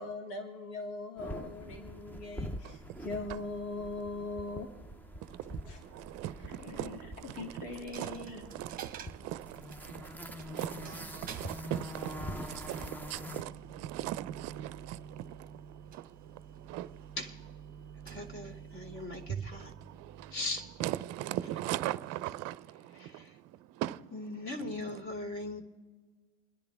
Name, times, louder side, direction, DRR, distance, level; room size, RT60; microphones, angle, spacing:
voice 1, 0.0-4.7 5.7-5.8 6.6-7.0 7.3-8.4, left 3 dB, 70° left, 2.6 m, -40 dB
sound 1, 1.2-13.4, equal, 5° left, 0.6 m, -45 dB
voice 2, 2.6-3.4 5.2-17.2 17.7-20.4 20.8-24.1 24.5-25.0, right 14 dB, 45° right, 0.6 m, -41 dB
Coin (dropping), 7.7-21.5, right 8 dB, 25° right, 1.1 m, -48 dB
voice 3, 18.0-19.7 20.3-20.7 23.0-23.3 24.1-25.6, left 2 dB, 35° left, 2.8 m, -39 dB
29.0 x 10.5 x 3.5 m
supercardioid pair, 115°, 36 cm